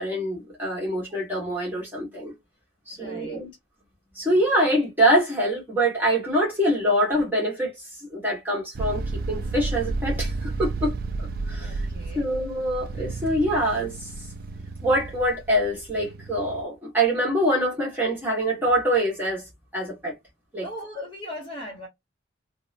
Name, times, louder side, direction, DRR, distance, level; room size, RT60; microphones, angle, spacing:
voice 1, 0.0-2.3 2.9-3.5 4.1-7.7 8.1-10.9 11.5-11.8 12.1-14.1 14.8-19.4 19.7-20.1 20.5-20.6, right 1 dB, 10° right, 1.3 m, -24 dB
voice 2, 2.9-3.4 11.6-12.3 20.6-21.9, left 1 dB, 30° left, 1.1 m, -38 dB
sound 1, 8.7-16.6, right 3 dB, 50° right, 0.3 m, -32 dB
2.8 x 2.0 x 2.5 m
head